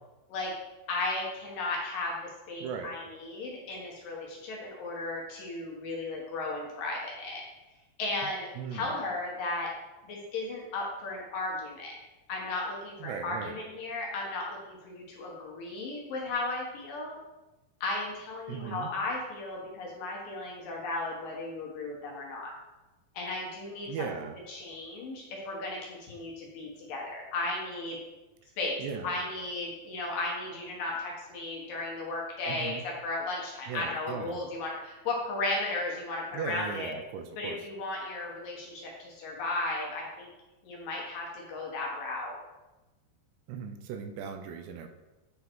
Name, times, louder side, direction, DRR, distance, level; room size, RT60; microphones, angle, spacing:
voice 1, 0.9-7.4 8.0-9.7 10.0-12.0 12.3-17.2 17.8-22.5 23.1-24.1 24.5-28.0 28.6-36.9 37.4-40.3 40.6-42.4, left 2 dB, 65° left, -3 dB, 2.6 m, -35 dB
voice 2, 2.6-3.0 8.6-8.9 13.0-13.6 18.5-18.9 23.9-24.4 28.8-29.2 32.5-32.8 33.7-34.4 36.3-37.6 43.5-44.9, right 6 dB, 85° right, 7 dB, 2.8 m, -38 dB
9.9 x 3.7 x 4.5 m, 1.1 s
omnidirectional pair, 4.8 m